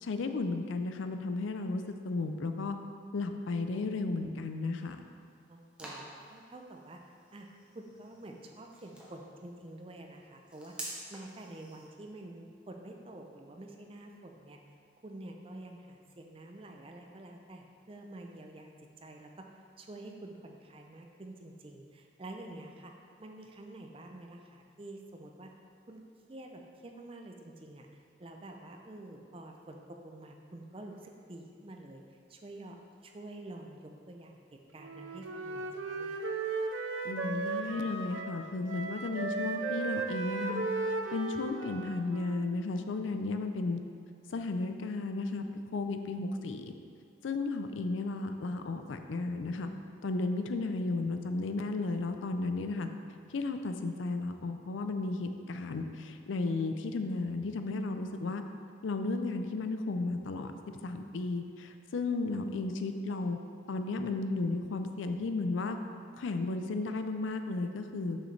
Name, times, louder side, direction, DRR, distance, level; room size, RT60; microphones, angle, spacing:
voice 1, 0.0-2.8 3.1-5.0 37.0-40.6 41.1-43.8 44.3-45.4 45.7-46.7 47.2-49.7 50.0-52.9 53.3-58.4 58.8-60.5 60.8-63.4 63.7-65.8 66.2-68.2, left 3 dB, 80° left, 7 dB, 0.4 m, -34 dB
sound 1, 4.7-11.9, right 1 dB, 5° right, 0.8 m, -49 dB
voice 2, 5.5-7.0 7.3-7.5 7.7-14.6 15.0-18.7 19.0-19.5 19.8-22.9 23.2-25.5 25.9-26.0 26.3-27.9 28.2-32.8 33.0-36.4, right 1 dB, 30° right, 3 dB, 0.5 m, -48 dB
Wind instrument woodwind instrument, 34.8-38.4 38.7-42.6, right 3 dB, 85° right, 0.5 m, -36 dB
6.4 x 6.2 x 3.2 m, 2.2 s
head